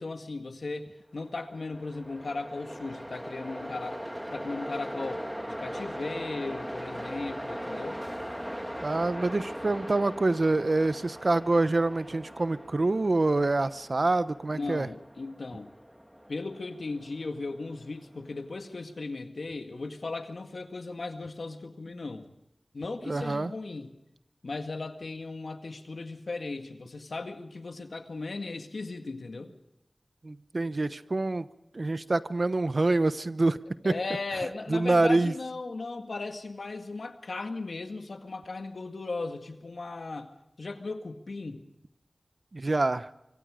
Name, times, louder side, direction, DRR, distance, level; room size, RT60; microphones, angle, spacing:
voice 1, 0.0-8.0 14.5-15.7 16.3-22.3 22.7-24.0 24.4-29.5 33.8-40.3 40.6-41.6, left 3 dB, 85° left, 6 dB, 2.0 m, -37 dB
Train, 1.3-18.5, equal, 5° right, 1.7 m, -40 dB
voice 2, 8.8-14.9 23.0-23.5 30.2-31.5 31.7-33.6 33.8-33.9 34.7-35.3 42.5-43.1, right 2 dB, 60° right, 13 dB, 0.9 m, -26 dB
25.0 x 24.5 x 5.1 m, 0.85 s
wide cardioid pair, 50°, 0 cm